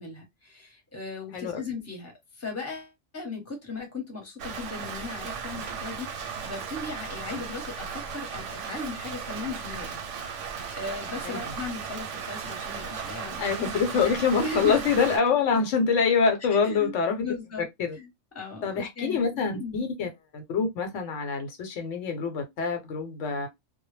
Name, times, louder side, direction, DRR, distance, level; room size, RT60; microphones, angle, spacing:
voice 1, 0.0-10.0 10.4-14.1 14.4-14.8 15.5-15.6 16.5-17.7 17.9-18.1 18.3-19.9, left 3 dB, 15° left, 0.9 m, -37 dB
Rain, 4.4-15.2, right 6 dB, 90° right, 1.0 m, -36 dB
voice 2, 13.4-17.2 17.9-18.0 18.6-23.5, left 5 dB, 80° left, 1.0 m, -25 dB
2.2 x 2.0 x 3.1 m
omnidirectional pair, 1.2 m